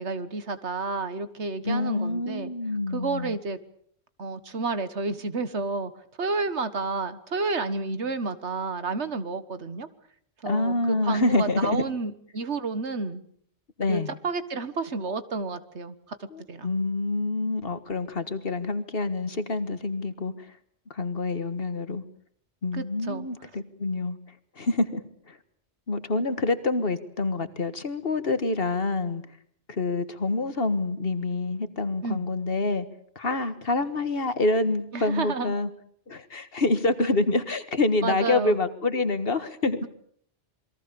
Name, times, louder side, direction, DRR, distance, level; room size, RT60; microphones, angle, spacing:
voice 1, 0.0-2.5 2.9-3.6 4.2-5.9 6.2-9.9 10.4-13.2 13.9-16.2 16.5-16.7 22.7-23.3 32.0-32.3 34.9-35.5 38.0-38.6, right 3 dB, 80° right, 12 dB, 1.8 m, -30 dB
voice 2, 1.6-3.4 10.4-11.9 13.8-14.2 16.3-20.5 20.9-22.0 22.6-24.2 24.6-25.4 25.9-29.2 29.7-32.9 33.2-35.7 36.1-39.9, left 2 dB, 55° left, 11 dB, 1.8 m, -27 dB
28.0 x 22.0 x 7.0 m, 0.64 s
omnidirectional pair, 1.1 m